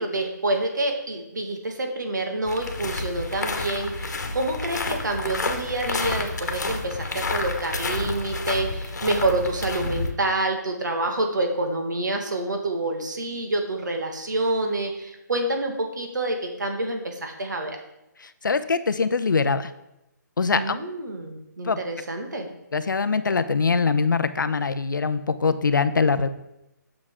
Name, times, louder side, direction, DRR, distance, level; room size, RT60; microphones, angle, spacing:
voice 1, 0.0-17.8 20.5-22.5, right 2 dB, 70° right, 3 dB, 1.8 m, -27 dB
sound 1, 2.5-10.1, left 3 dB, 65° left, 1.2 m, -29 dB
voice 2, 18.2-19.7 20.4-20.7 21.6-21.8 22.7-26.3, left 4 dB, 90° left, 12 dB, 0.7 m, -23 dB
8.7 x 6.1 x 3.7 m, 0.87 s
hypercardioid pair, 175°, 10 cm